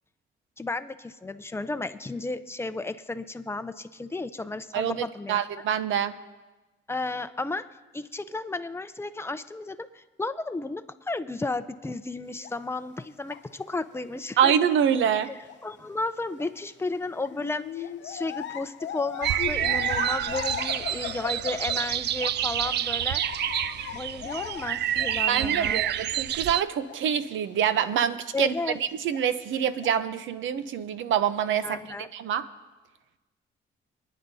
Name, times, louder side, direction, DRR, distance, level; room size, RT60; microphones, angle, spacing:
voice 1, 0.6-5.4 6.9-7.7 7.9-14.5 15.3-23.2 23.9-25.8 28.3-28.8 31.6-32.1, left 3 dB, 10° left, 10 dB, 0.6 m, -33 dB
voice 2, 4.7-6.2 14.4-15.3 25.3-28.5 29.0-31.8 32.1-32.4, right 9 dB, 75° right, 12 dB, 0.8 m, -25 dB
sound 1, 12.4-12.5 13.3-13.4 13.9-14.0 14.7-14.8 15.5-15.6 16.4-16.5 17.2-22.4 22.6-26.0 26.3-26.4 26.8-27.0 27.7-27.9 29.1-29.2 29.8-29.9, left 9 dB, 65° left, 0.9 m, -37 dB
sound 2, 19.2-26.6, right 12 dB, 60° right, 0.4 m, -28 dB
25.5 x 10.0 x 2.8 m, 1.2 s
cardioid pair, 90°, 20 cm